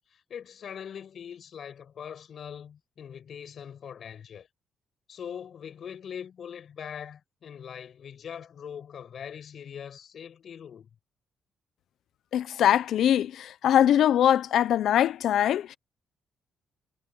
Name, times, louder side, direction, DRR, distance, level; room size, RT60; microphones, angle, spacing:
voice 1, 0.3-4.5 5.1-10.9, left 8 dB, 60° left, 6.4 m, -42 dB
voice 2, 12.3-15.8, left 10 dB, 75° left, 0.8 m, -22 dB
cardioid pair, 90°, 0 cm